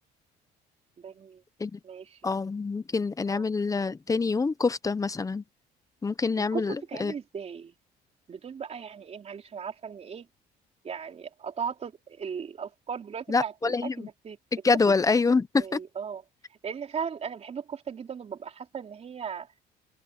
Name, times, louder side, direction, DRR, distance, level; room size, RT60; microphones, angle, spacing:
voice 1, 1.0-1.4 1.8-2.2 3.3-3.5 6.5-7.7 8.3-10.3 10.8-14.4 15.2-15.3 15.6-16.2 16.5-19.5, right 7 dB, 40° right, 3.7 m, -37 dB
voice 2, 2.2-5.4 6.0-7.1 13.3-13.9 14.6-15.8, left 4 dB, 20° left, 0.9 m, -26 dB
open air
cardioid pair, 110°, 17 cm